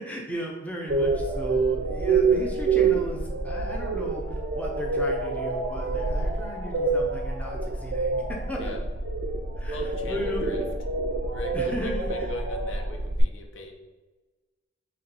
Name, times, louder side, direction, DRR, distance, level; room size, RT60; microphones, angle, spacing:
voice 1, 0.0-8.2 8.5-8.7 9.6-10.5 11.5-12.1, equal, 10° left, -2 dB, 0.5 m, -36 dB
sound 1, 0.9-13.2, right 3 dB, 60° right, 0.4 m, -27 dB
voice 2, 9.7-10.6 11.3-13.8, left 2 dB, 70° left, 3 dB, 0.5 m, -38 dB
4.2 x 3.0 x 2.8 m, 1.2 s
head